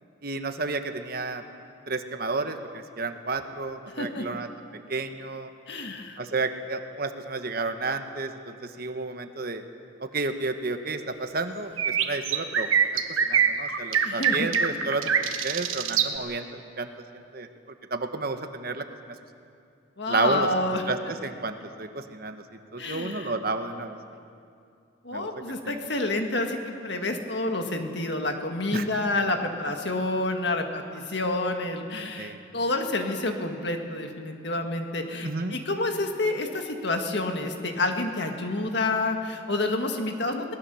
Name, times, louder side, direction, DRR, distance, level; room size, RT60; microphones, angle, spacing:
voice 1, 0.2-1.4 1.9-4.5 4.9-5.5 6.2-9.6 10.0-12.8 13.3-16.9 17.3-17.5 17.9-18.9 20.1-20.5 20.9-22.4 22.7-24.0 25.1-25.3 25.6-25.7 28.7-28.9 32.2-32.4 35.2-35.5, right 3 dB, 45° right, 7 dB, 1.1 m, -31 dB
voice 2, 3.9-4.3 5.7-6.2 14.0-14.5 20.0-20.8 22.8-23.4 25.0-40.5, left 2 dB, 55° left, 4 dB, 1.9 m, -29 dB
sound 1, 11.8-16.1, right 8 dB, 90° right, 1.3 m, -23 dB
23.0 x 19.0 x 7.0 m, 2.5 s
head